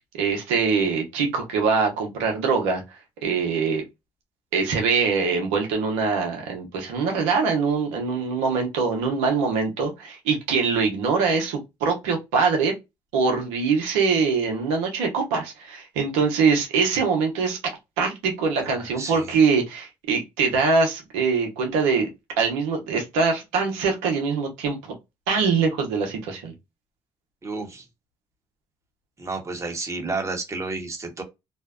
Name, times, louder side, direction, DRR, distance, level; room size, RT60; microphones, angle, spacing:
voice 1, 0.2-2.8 3.2-3.8 4.5-12.7 13.1-17.6 18.0-22.1 22.4-24.8 25.3-26.5, right 5 dB, 90° right, 0.8 m, -23 dB
voice 2, 18.6-19.3 27.4-27.8 29.2-31.2, right 3 dB, 30° right, 0.9 m, -31 dB
2.5 x 2.1 x 2.3 m
supercardioid pair, 60°, 11 cm